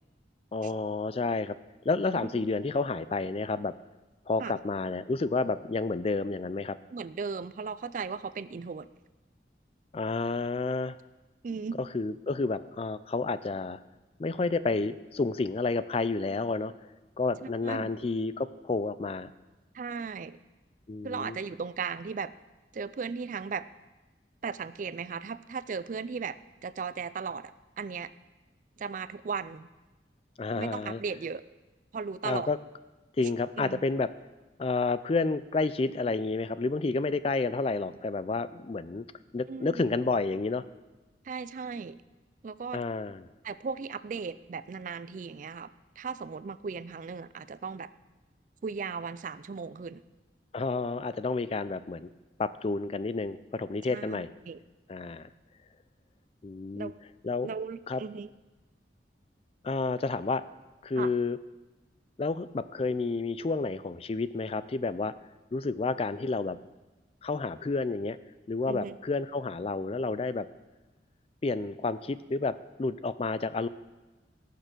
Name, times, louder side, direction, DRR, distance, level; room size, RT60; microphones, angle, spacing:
voice 1, 0.5-1.6 1.9-3.7 4.3-6.8 9.9-11.0 11.8-13.8 14.2-16.7 17.2-19.3 20.9-21.4 30.4-31.0 32.2-32.6 33.2-34.1 34.6-39.0 39.3-40.6 42.7-43.3 50.5-52.1 52.4-54.3 54.9-55.3 56.4-56.9 57.2-57.5 57.9-58.0 59.6-60.4 60.8-61.4 62.2-65.1 65.5-66.6 67.2-68.2 68.5-70.5 71.4-73.7, left 3 dB, 35° left, 15 dB, 0.4 m, -30 dB
voice 2, 6.9-8.9 11.4-11.8 17.4-17.9 19.7-20.4 21.0-22.3 22.7-23.7 24.4-26.4 26.6-27.5 27.8-28.1 28.8-29.7 30.5-31.4 31.9-32.5 33.2-33.3 33.6-33.8 39.5-39.8 41.2-42.0 42.4-42.8 43.4-45.7 46.0-47.9 48.6-50.0 53.9-54.6 56.7-57.0 57.4-58.3 61.0-61.1 68.7-69.0, right 5 dB, 45° right, 15 dB, 0.4 m, -36 dB
17.0 x 6.7 x 6.2 m, 1.2 s
head